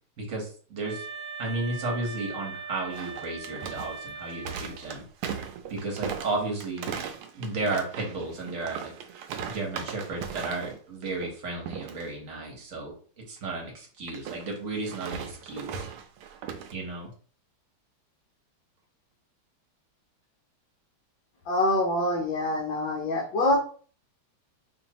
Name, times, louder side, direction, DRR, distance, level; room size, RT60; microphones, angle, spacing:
voice 1, 0.2-1.0 1.4-5.0 5.7-7.0 7.3-8.9 9.5-12.9 13.3-15.9 16.7-17.1, right 2 dB, 45° right, 0 dB, 1.3 m, -33 dB
Wind instrument woodwind instrument, 0.8-5.0, right 5 dB, 40° left, 2.4 m, -40 dB
sound 1, 2.9-10.8 11.1-11.3 11.7-12.0 14.1-16.7, right 7 dB, 85° right, 1.5 m, -38 dB
voice 2, 21.5-23.6, left 1 dB, 65° left, -3 dB, 1.6 m, -25 dB
5.1 x 2.6 x 2.9 m, 0.41 s
omnidirectional pair, 2.3 m